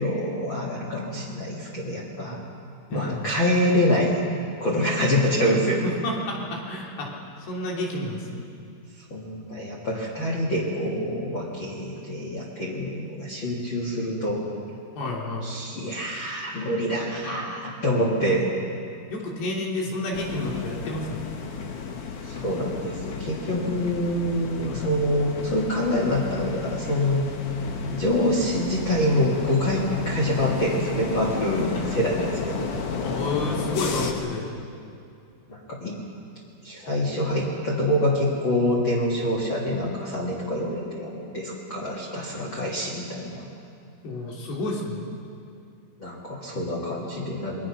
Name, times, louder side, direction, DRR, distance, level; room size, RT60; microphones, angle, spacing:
voice 1, 0.0-2.4 2.9-4.2 4.6-5.9 9.1-14.4 15.4-18.5 22.2-27.3 27.8-31.7 31.9-32.7 35.5-36.0 36.6-43.5 46.0-47.7, left 1 dB, 35° left, -3 dB, 2.2 m, -26 dB
voice 2, 2.9-3.3 5.8-7.1 7.4-8.5 15.0-15.5 19.1-21.2 24.6-24.9 31.5-31.8 33.0-34.5 44.0-45.1, left 2 dB, 70° left, -2 dB, 5.1 m, -30 dB
sound 1, 20.1-34.1, left 5 dB, 90° left, 1.3 m, -33 dB
27.5 x 21.5 x 5.9 m, 2.5 s
omnidirectional pair, 5.1 m